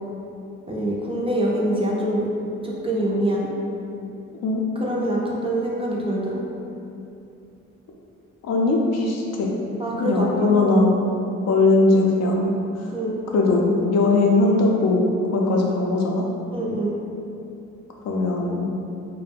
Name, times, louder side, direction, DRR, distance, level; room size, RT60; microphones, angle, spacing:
voice 1, 0.7-2.3 2.6-3.5 4.8-6.4 9.8-10.8 12.9-13.2 16.5-17.0, right 1 dB, 20° right, -4 dB, 0.4 m, -25 dB
voice 2, 8.4-9.5 10.0-10.9 11.5-12.9 13.3-15.0 15.3-16.2 18.0-18.7, left 2 dB, 60° left, -1 dB, 0.4 m, -20 dB
2.4 x 2.1 x 3.3 m, 2.7 s
cardioid pair, 90°, 30 cm